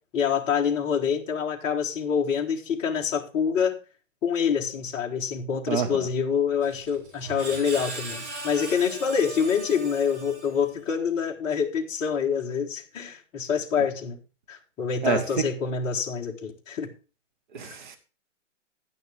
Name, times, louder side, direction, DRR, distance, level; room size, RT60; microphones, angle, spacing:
voice 1, 0.1-3.8 4.2-14.2 14.5-16.9 17.6-17.8, left 7 dB, 15° left, -2 dB, 1.5 m, -26 dB
voice 2, 5.7-6.1 15.0-15.2 17.5-18.0, right 6 dB, 40° right, 8 dB, 1.4 m, -27 dB
Screech, 6.6-10.9, right 2 dB, 60° right, 4.6 m, -39 dB
11.0 x 9.3 x 3.5 m, 0.34 s
hypercardioid pair, 160°, 38 cm